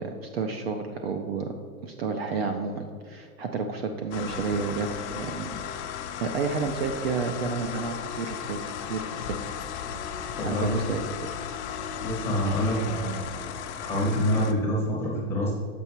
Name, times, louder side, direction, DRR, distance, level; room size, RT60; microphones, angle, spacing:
voice 1, 0.0-1.5 1.8-4.9 5.1-5.6 6.2-9.6 10.5-11.3, right 4 dB, 45° right, 5 dB, 0.4 m, -31 dB
sound 1, 4.1-14.5, left 8 dB, 50° left, 0.6 m, -35 dB
voice 2, 10.4-10.8 12.0-13.3 13.8-15.5, equal, 5° left, -4 dB, 0.7 m, -26 dB
6.9 x 4.8 x 4.4 m, 2.1 s
supercardioid pair, 165°, 45 cm